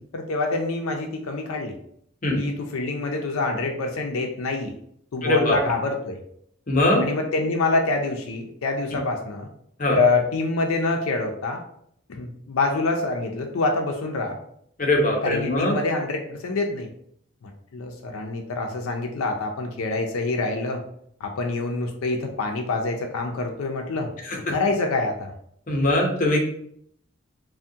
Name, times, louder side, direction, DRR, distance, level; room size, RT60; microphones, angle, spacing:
voice 1, 0.1-1.7 2.4-4.7 5.1-6.2 7.0-9.5 9.9-11.6 12.1-14.4 15.2-16.9 17.4-20.8 21.2-24.1 24.5-25.3, left 3 dB, 90° left, 3 dB, 0.4 m, -26 dB
voice 2, 5.2-5.6 6.7-7.0 9.8-10.0 14.8-15.7 24.3-24.4 25.7-26.4, left 1 dB, 40° left, 0 dB, 0.7 m, -21 dB
3.4 x 2.1 x 2.7 m, 0.69 s
head